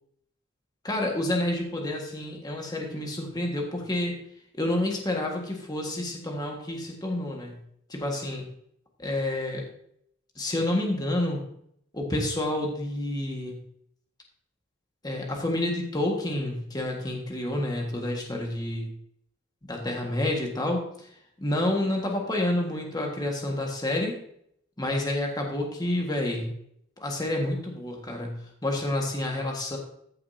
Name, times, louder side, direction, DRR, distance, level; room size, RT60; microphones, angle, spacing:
voice 1, 0.8-4.2 4.5-7.6 7.9-8.4 9.0-9.7 10.4-11.4 11.9-13.6 15.0-18.9 19.7-20.8 21.4-24.2 24.8-26.5 27.0-29.8, left 1 dB, 20° left, 1 dB, 1.6 m, -29 dB
14.5 x 6.7 x 2.8 m, 0.70 s
head